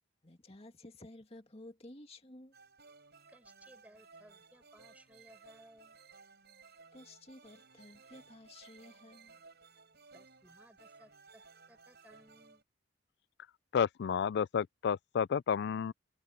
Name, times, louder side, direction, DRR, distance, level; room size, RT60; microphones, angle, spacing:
voice 1, 0.2-2.5 6.9-9.4, left 1 dB, 30° left, 2.2 m, -53 dB
sound 1, 2.5-12.6, right 4 dB, 55° right, 7.3 m, -59 dB
voice 2, 3.3-6.0 10.1-12.6, right 1 dB, 10° right, 4.6 m, -61 dB
voice 3, 13.7-15.9, left 7 dB, 60° left, 0.3 m, -31 dB
head